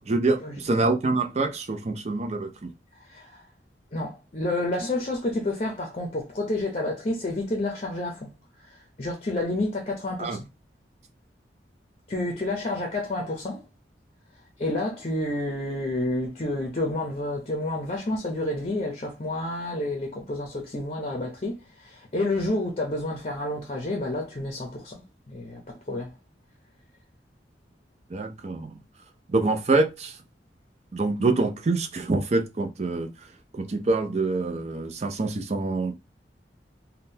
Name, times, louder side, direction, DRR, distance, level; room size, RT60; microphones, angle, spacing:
voice 1, 0.1-2.7 10.2-10.4 28.1-28.8 29.3-30.2 30.9-35.9, right 3 dB, 40° right, 0.5 m, -26 dB
voice 2, 2.9-3.5 3.9-8.3 8.6-10.4 12.1-13.6 14.6-26.1, left 2 dB, 35° left, 0.6 m, -30 dB
3.7 x 2.2 x 2.7 m
head